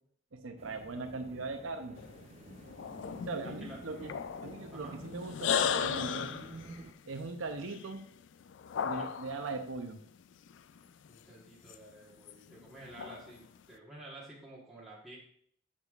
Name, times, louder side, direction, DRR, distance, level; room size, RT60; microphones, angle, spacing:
voice 1, 0.3-2.0 3.3-4.1 4.4-6.3 7.1-8.0 8.8-10.0, right 3 dB, 75° right, 6 dB, 0.7 m, -39 dB
sound 1, 0.6-6.9, right 2 dB, 30° right, 0.4 m, -51 dB
sound 2, 2.0-9.5 10.4-11.8 12.1-13.5, left 7 dB, 65° left, 0.3 m, -37 dB
voice 2, 3.3-3.8 4.7-5.0 8.9-9.1 11.1-15.2, right 1 dB, ahead, -8 dB, 1.2 m, -51 dB
8.1 x 6.8 x 2.4 m, 0.63 s
head